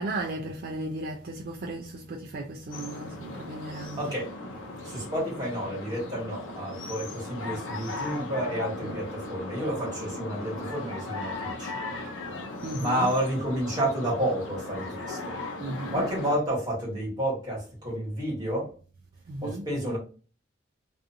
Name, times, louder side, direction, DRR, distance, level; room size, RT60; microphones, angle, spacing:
voice 1, 0.0-4.0 8.8-9.0 12.6-13.1 15.6-16.0 19.3-19.7, right 2 dB, 50° right, 0.3 m, -35 dB
sound 1, 2.7-16.4, left 2 dB, 90° left, 0.6 m, -37 dB
voice 2, 4.0-4.3 4.8-11.7 12.7-15.4 15.9-18.7 19.4-20.0, equal, 20° right, 1.2 m, -30 dB
2.5 x 2.5 x 2.6 m
head